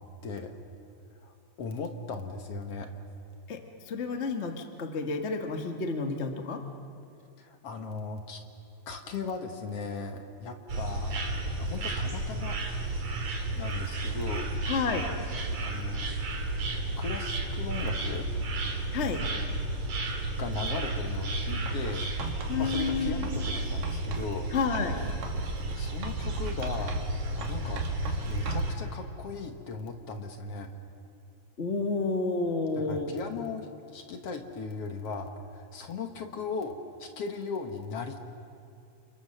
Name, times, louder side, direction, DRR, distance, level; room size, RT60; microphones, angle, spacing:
voice 1, 0.2-0.5 1.2-2.9 7.4-8.4 8.9-11.2 11.6-12.8 13.6-14.6 15.6-16.1 17.0-18.3 20.4-22.1 22.5-24.5 25.8-30.7 32.7-38.3, left 4 dB, 55° left, 5 dB, 2.0 m, -37 dB
voice 2, 3.5-6.6 14.6-15.1 18.9-19.2 22.5-23.3 24.5-25.0 31.6-33.1, left 4 dB, 40° left, 4 dB, 1.0 m, -30 dB
sound 1, 10.7-28.7, right 2 dB, 50° right, 3.5 m, -32 dB
Writing, 21.7-24.3 24.7-27.2 27.4-28.8, right 3 dB, 85° right, 3.7 m, -40 dB
29.0 x 28.0 x 6.7 m, 2.5 s
omnidirectional pair, 3.8 m